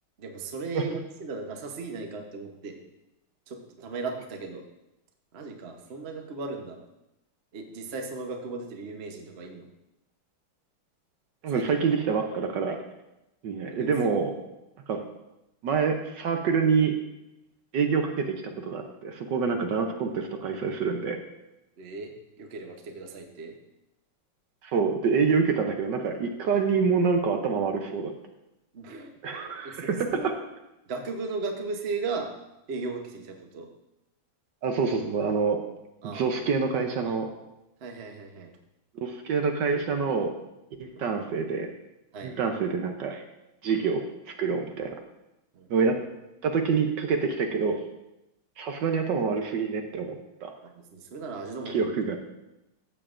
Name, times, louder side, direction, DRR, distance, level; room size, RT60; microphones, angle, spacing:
voice 1, 0.2-2.8 3.5-4.6 5.3-6.8 7.5-9.7 11.5-11.6 13.7-14.1 21.8-22.1 22.4-23.5 28.7-29.1 29.6-30.3 30.9-32.3 32.7-33.7 36.0-36.4 37.8-38.5 40.9-41.1 42.1-42.3 45.5-46.0 50.6-51.9, right 3 dB, 50° right, 3 dB, 0.8 m, -36 dB
voice 2, 11.4-12.8 13.4-14.3 14.9-15.0 15.6-16.9 17.7-21.2 24.6-28.1 29.2-30.3 34.6-35.6 36.0-37.3 39.0-40.3 40.8-41.7 42.2-43.2 43.6-44.0 44.4-45.0 45.7-46.0 46.4-47.8 48.6-50.5 51.7-52.2, right 5 dB, 65° right, 4 dB, 1.2 m, -26 dB
14.5 x 7.2 x 2.5 m, 0.92 s
omnidirectional pair, 2.4 m